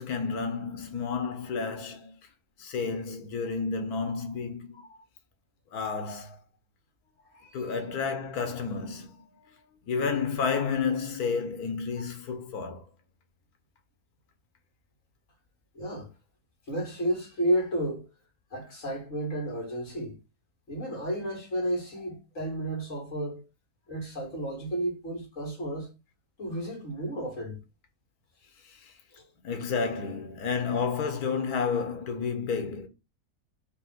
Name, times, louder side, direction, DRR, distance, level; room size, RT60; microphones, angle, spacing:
voice 1, 0.0-2.2 2.6-4.8 5.7-6.4 7.5-12.9 28.6-28.9 29.4-32.9, left 5 dB, 75° left, 1.4 m, -31 dB
voice 2, 7.3-7.8 15.7-16.1 16.7-18.0 18.5-20.2 20.7-23.4 23.9-25.9 26.4-27.6 29.1-29.3, right 1 dB, 55° left, 2.3 m, -32 dB
5.1 x 2.5 x 3.7 m
omnidirectional pair, 1.6 m